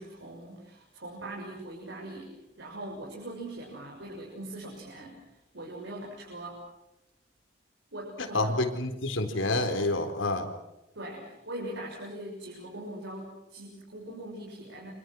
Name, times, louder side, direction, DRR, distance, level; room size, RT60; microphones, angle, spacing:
voice 1, 0.0-6.6 7.9-8.5 10.9-14.9, right 1 dB, 65° right, -2 dB, 6.9 m, -41 dB
voice 2, 8.2-10.5, left 2 dB, 85° left, 6 dB, 4.0 m, -28 dB
30.0 x 27.0 x 6.2 m, 0.93 s
head